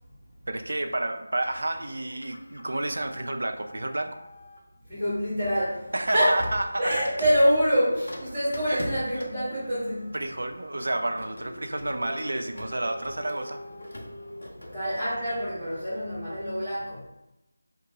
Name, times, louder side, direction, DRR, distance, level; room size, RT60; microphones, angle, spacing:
voice 1, 0.5-4.2 5.9-7.0 8.7-8.8 9.2-9.3 10.1-13.6, right 2 dB, 60° right, 6 dB, 0.3 m, -30 dB
Printer, 1.4-4.7 5.4-15.9, left 1 dB, 65° left, 0.5 m, -42 dB
voice 2, 4.9-5.9 6.1-6.4 6.8-10.1 14.7-17.1, equal, ahead, -22 dB, 0.8 m, -26 dB
2.9 x 2.2 x 2.8 m, 0.92 s
figure-of-eight pair, 160°, 0 cm